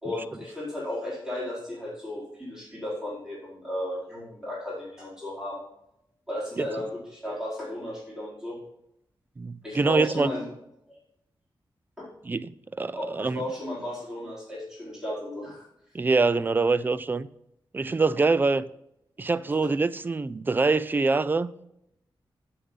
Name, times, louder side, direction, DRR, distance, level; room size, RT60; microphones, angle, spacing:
voice 1, 0.0-5.6 6.3-8.6 9.6-10.5 12.0-12.1 12.9-15.7 19.6-19.7, left 1 dB, 5° right, 4.7 m, -34 dB
voice 2, 9.4-10.3 12.3-13.4 15.9-17.3 17.7-18.7 19.2-21.7, right 3 dB, 25° right, 0.4 m, -25 dB
8.5 x 7.4 x 5.5 m
wide cardioid pair, 175°, 9 cm